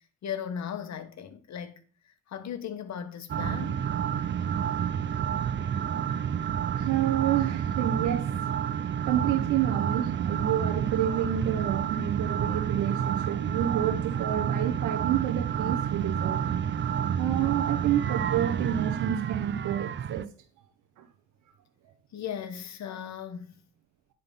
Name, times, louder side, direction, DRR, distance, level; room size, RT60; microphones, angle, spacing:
voice 1, 0.2-1.8 2.3-3.8 22.1-23.6, left 8 dB, 65° left, 1.4 m, -37 dB
sound 1, 3.3-20.2, right 8 dB, 40° right, 0.5 m, -29 dB
voice 2, 6.7-8.3 9.0-16.4 17.2-20.3 21.0-21.1, right 11 dB, 85° right, 0.9 m, -29 dB
9.9 x 3.8 x 5.4 m
cardioid pair, 90°, 30 cm